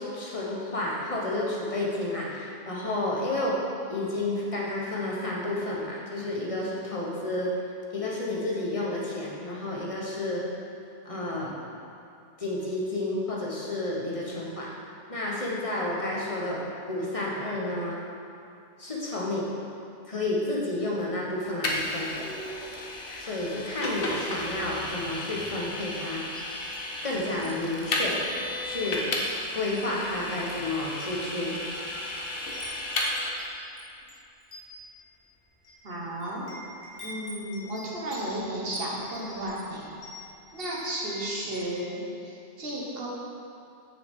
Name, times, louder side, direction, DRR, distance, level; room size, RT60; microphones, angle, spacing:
voice 1, 0.0-3.6 3.9-7.5 7.9-10.4 11.0-11.5 12.4-14.7 15.1-18.0 18.8-19.5 20.1-22.3 23.2-26.3 27.0-28.2 28.6-29.1 29.5-31.6, left 2 dB, 35° left, -4 dB, 1.0 m, -31 dB
Vehicle, 21.6-33.3, left 1 dB, 65° left, 1.0 m, -33 dB
Wind chime, 26.2-27.5 27.9-28.1 28.7-29.4 29.7-30.0 30.7-30.8 31.5-31.9 32.2-41.7, left 1 dB, 85° left, 1.6 m, -46 dB
voice 2, 35.8-36.5 37.0-39.9 40.5-43.1, right 1 dB, 65° right, -4 dB, 1.3 m, -33 dB
6.8 x 6.0 x 3.5 m, 2.6 s
omnidirectional pair, 1.1 m